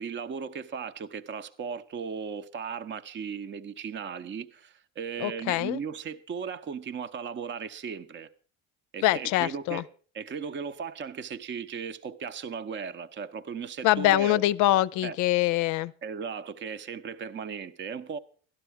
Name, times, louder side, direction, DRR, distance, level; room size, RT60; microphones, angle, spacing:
voice 1, 0.0-8.3 8.9-9.9 10.1-14.4 15.0-15.2 16.0-18.2, right 6 dB, 35° right, 0.7 m, -36 dB
voice 2, 5.2-5.8 9.0-9.8 13.8-15.9, left 16 dB, 60° left, 0.5 m, -24 dB
12.0 x 11.5 x 4.6 m
supercardioid pair, 80°, 34 cm